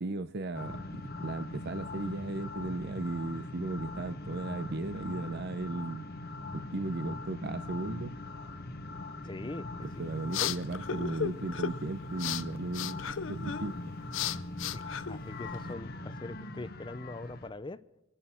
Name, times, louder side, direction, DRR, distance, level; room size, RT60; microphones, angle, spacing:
voice 1, 0.0-6.0 6.5-8.1 9.8-13.9, right 2 dB, 55° right, 0.7 m, -36 dB
sound 1, 0.5-17.5, left 2 dB, 50° left, 1.2 m, -41 dB
voice 2, 9.2-10.0 10.4-10.5 14.7-17.8, left 2 dB, 25° left, 0.5 m, -42 dB
sound 2, 9.8-15.7, left 8 dB, 70° left, 0.6 m, -37 dB
27.0 x 11.0 x 4.4 m
head